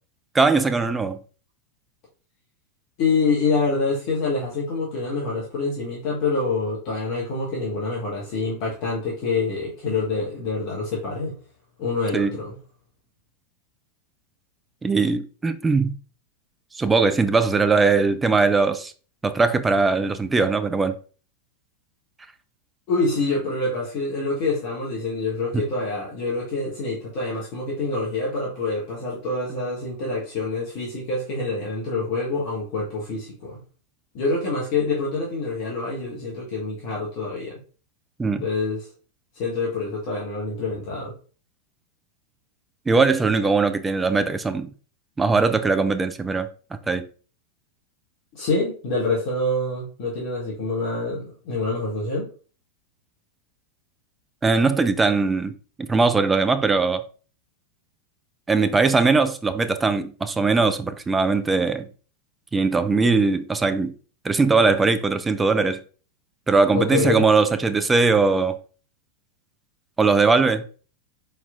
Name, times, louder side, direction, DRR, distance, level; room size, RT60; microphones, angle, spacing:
voice 1, 0.3-1.2 12.1-12.4 14.8-16.0 16.8-18.9 19.2-20.9 38.2-38.5 42.9-44.7 45.2-46.5 46.9-47.1 54.4-55.5 55.9-57.0 58.5-61.9 62.5-63.9 64.2-65.8 66.5-68.6 70.0-70.6, right 4 dB, 15° right, 0.4 m, -20 dB
voice 2, 3.0-11.4 11.8-12.6 22.9-33.6 34.1-37.6 38.4-38.9 39.3-41.1 48.3-52.3 66.7-67.3, left 3 dB, 45° left, 1.1 m, -26 dB
4.3 x 4.2 x 2.4 m
figure-of-eight pair, 90°, 0 cm